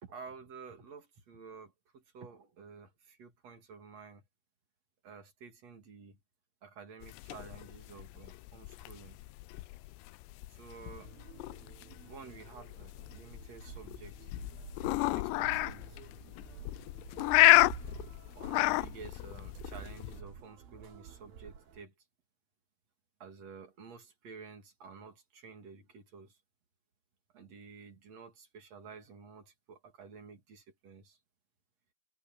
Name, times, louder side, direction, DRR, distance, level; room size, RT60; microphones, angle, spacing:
voice 1, 0.0-4.3 5.0-6.2 6.6-9.2 10.5-11.1 12.1-14.3 15.1-16.0 17.2-17.7 18.3-21.9 23.2-26.4 27.3-31.2, right 5 dB, 40° right, 3.3 m, -51 dB
sound 1, 7.0-20.2, left 21 dB, 85° left, 2.7 m, -31 dB
sound 2, 10.9-21.8, right 6 dB, 60° right, 4.4 m, -57 dB
sound 3, 13.1-21.5, right 9 dB, 80° right, 3.7 m, -49 dB
omnidirectional pair, 5.0 m